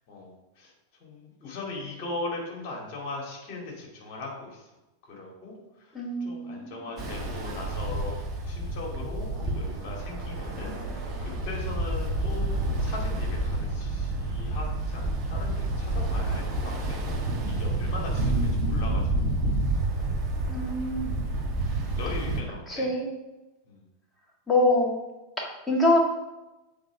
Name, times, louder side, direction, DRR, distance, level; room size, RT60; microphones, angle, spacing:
voice 1, 0.1-0.7 1.0-4.7 5.0-8.2 8.4-17.0 17.5-19.5 19.9-20.0 20.6-20.8 21.9-22.9 23.7-23.8, left 2 dB, 40° left, -1 dB, 2.5 m, -39 dB
voice 2, 5.9-6.9 20.5-21.2 22.7-23.1 24.5-25.0 25.4-26.0, left 1 dB, 5° left, -2 dB, 1.7 m, -25 dB
Ocean, 7.0-22.4, right 2 dB, 30° right, 1.6 m, -29 dB
7.8 x 3.7 x 5.0 m, 1.0 s
figure-of-eight pair, 90°, 0 cm